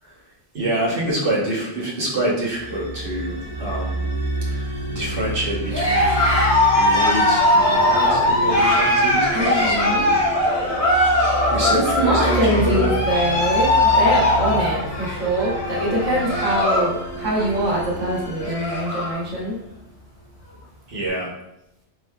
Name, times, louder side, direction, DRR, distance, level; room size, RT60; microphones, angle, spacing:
voice 1, 0.5-4.1 4.5-6.2 6.7-10.7 11.5-13.0 13.3-13.4 20.9-21.3, right 1 dB, 50° right, -5 dB, 1.2 m, -27 dB
sound 1, 2.5-19.6, right 2 dB, 85° left, 1.6 m, -30 dB
Cheering, 5.7-16.9 17.2-17.6 18.1-18.2 18.3-19.2, left 1 dB, 45° left, 1.3 m, -20 dB
voice 2, 9.3-10.1 11.7-19.5, right 1 dB, 90° right, -4 dB, 1.5 m, -23 dB
4.5 x 3.2 x 2.3 m, 0.85 s
omnidirectional pair, 1.2 m